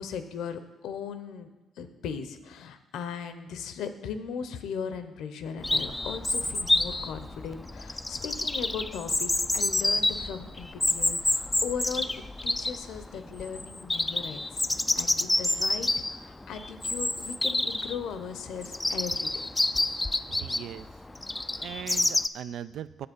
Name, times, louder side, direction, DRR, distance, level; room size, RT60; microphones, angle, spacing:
voice 1, 0.0-19.5, left 6 dB, 80° left, 10 dB, 0.7 m, -38 dB
Chirp tweet, 5.6-22.3, left 2 dB, 15° left, 0.3 m, -28 dB
voice 2, 20.3-20.9 21.6-23.1, right 10 dB, 75° right, 15 dB, 0.3 m, -39 dB
8.7 x 7.7 x 5.2 m, 1.1 s
cardioid pair, 90°, 0 cm